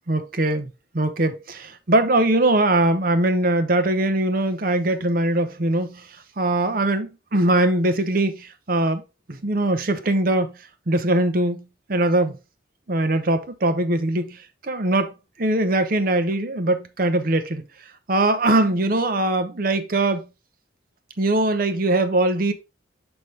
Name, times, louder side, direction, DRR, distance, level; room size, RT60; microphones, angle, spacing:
voice 1, 0.1-6.1 6.4-9.0 9.3-10.6 10.9-12.4 12.9-15.1 15.4-17.6 18.1-20.2 21.2-22.5, right 2 dB, 50° right, 0.8 m, -21 dB
6.1 x 5.4 x 3.3 m
head